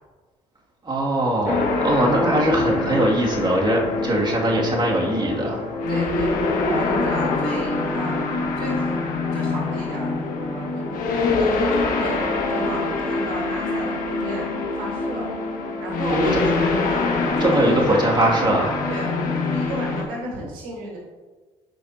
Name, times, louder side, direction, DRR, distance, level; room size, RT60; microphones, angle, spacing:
voice 1, 0.8-5.7 16.1-16.3 17.4-18.8, right 1 dB, 35° right, -3 dB, 2.5 m, -21 dB
sound 1, 1.5-20.0, left 3 dB, 70° left, 1.7 m, -24 dB
voice 2, 5.9-6.3 6.6-8.9 9.3-12.2 12.5-14.5 14.8-15.2 15.8-18.3 18.9-21.0, right 2 dB, 80° right, -1 dB, 1.7 m, -33 dB
12.5 x 5.1 x 2.9 m, 1.3 s
supercardioid pair, 60°, 14 cm